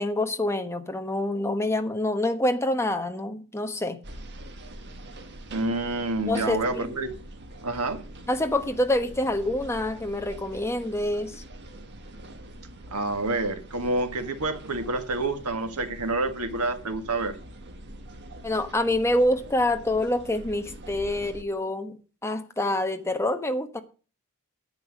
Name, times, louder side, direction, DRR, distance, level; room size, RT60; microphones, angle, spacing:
voice 1, 0.0-4.0 6.3-6.9 8.3-11.4 18.4-23.8, left 1 dB, 10° left, 1.2 m, -26 dB
sound 1, 4.0-21.4, right 1 dB, 50° right, 1.6 m, -44 dB
voice 2, 5.5-7.1 7.6-8.0 12.9-17.4, right 2 dB, 85° right, 1.7 m, -28 dB
10.5 x 7.9 x 6.3 m
head